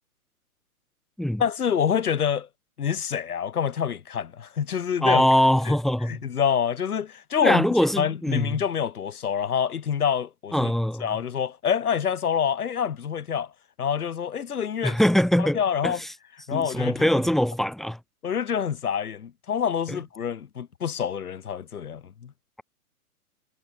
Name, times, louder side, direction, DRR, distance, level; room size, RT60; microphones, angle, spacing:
voice 1, 1.4-2.5 2.8-5.2 5.7-5.8 6.1-7.7 8.0-10.7 11.0-13.5 13.8-15.0 15.4-16.0 16.5-17.1 18.2-22.3, left 8 dB, 80° left, 1.1 m, -27 dB
voice 2, 5.0-6.2 7.4-8.6 10.5-11.1 14.8-16.1 16.5-18.0 19.9-20.0, equal, ahead, 1.4 m, -22 dB
hypercardioid pair, 150°, 45 cm